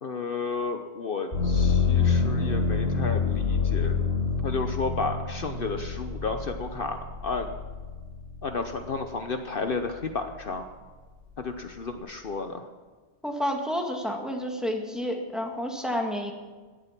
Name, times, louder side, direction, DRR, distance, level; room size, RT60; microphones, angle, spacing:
voice 1, 0.0-4.0 4.4-7.5 8.4-10.6 11.4-12.7, left 4 dB, 55° left, 6 dB, 1.1 m, -32 dB
sound 1, 1.3-9.1 9.6-10.4, left 5 dB, 80° left, 6.8 m, -27 dB
voice 2, 13.2-16.3, equal, ahead, 1 dB, 2.0 m, -30 dB
17.5 x 12.0 x 6.0 m, 1.4 s
omnidirectional pair, 1.1 m